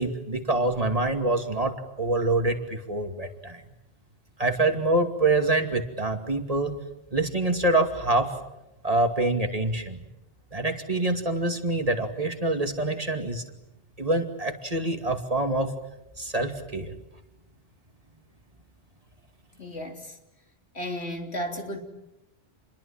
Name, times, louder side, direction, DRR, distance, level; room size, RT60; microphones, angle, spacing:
voice 1, 0.0-3.6 4.4-6.7 7.1-8.3 8.8-10.0 10.5-13.4 14.0-15.7 16.2-16.9, right 2 dB, 35° right, 5 dB, 2.6 m, -25 dB
voice 2, 19.6-20.0 20.8-21.8, equal, 75° left, 3 dB, 3.9 m, -33 dB
28.5 x 22.0 x 8.9 m, 0.90 s
omnidirectional pair, 1.1 m